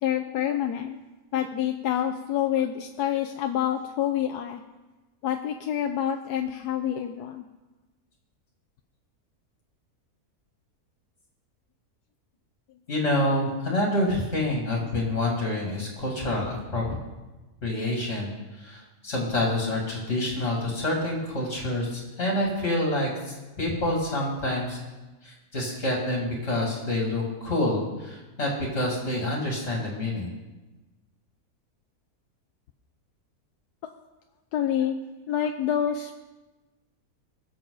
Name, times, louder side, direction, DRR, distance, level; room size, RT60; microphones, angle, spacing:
voice 1, 0.0-1.0 1.3-4.6 5.2-7.4 33.8-33.9 34.5-35.0 35.3-36.2, left 10 dB, 85° left, 5 dB, 1.2 m, -27 dB
voice 2, 12.9-17.0 17.6-18.3 18.6-24.8 25.2-30.3, left 1 dB, 45° left, -2 dB, 3.0 m, -27 dB
20.5 x 7.0 x 4.0 m, 1.1 s
omnidirectional pair, 1.7 m